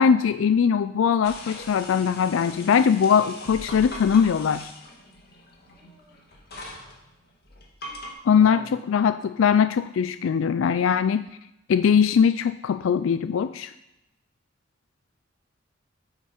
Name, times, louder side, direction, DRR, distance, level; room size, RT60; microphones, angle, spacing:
voice 1, 0.0-4.7 8.2-11.3 11.7-13.7, left 7 dB, 80° left, 13 dB, 0.4 m, -21 dB
sound 1, 1.2-8.1, left 1 dB, 55° left, 1.9 m, -41 dB
voice 2, 2.3-3.0 5.7-6.2 8.3-8.7, left 1 dB, 20° left, -5 dB, 3.7 m, -47 dB
8.4 x 8.3 x 4.4 m, 0.90 s
head